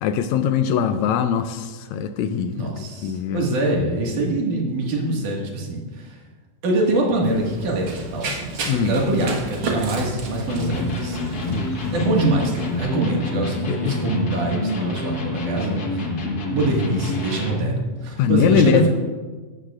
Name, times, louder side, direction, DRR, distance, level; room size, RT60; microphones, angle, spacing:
voice 1, 0.0-2.7 3.0-3.4 8.7-9.0 11.5-12.2 13.7-14.0 18.2-18.9, left 7 dB, 80° left, 9 dB, 1.8 m, -22 dB
voice 2, 2.5-6.2 6.6-11.4 11.9-16.1 16.5-18.9, right 2 dB, 80° right, -2 dB, 3.4 m, -24 dB
Run, 7.2-12.8, right 3 dB, 50° right, 2.0 m, -32 dB
Electric guitar, 10.5-17.8, left 1 dB, 45° left, 1.3 m, -27 dB
16.5 x 12.5 x 2.5 m, 1.4 s
omnidirectional pair, 3.5 m